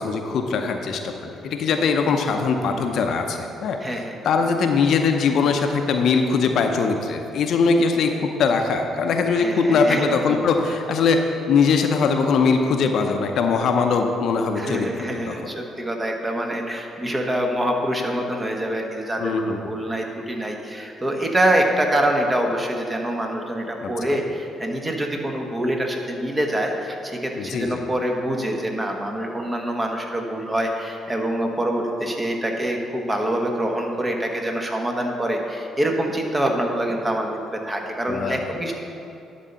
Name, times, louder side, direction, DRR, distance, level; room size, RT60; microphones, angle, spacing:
voice 1, 0.0-11.2 11.5-15.5 19.2-19.6 23.8-24.2 27.4-27.8 38.1-38.5, left 5 dB, 60° left, 5 dB, 0.6 m, -21 dB
voice 2, 3.8-4.1 9.4-10.4 14.6-37.4 37.7-38.7, right 1 dB, 25° right, 2 dB, 1.4 m, -25 dB
10.5 x 4.2 x 6.9 m, 2.8 s
hypercardioid pair, 45°, 0 cm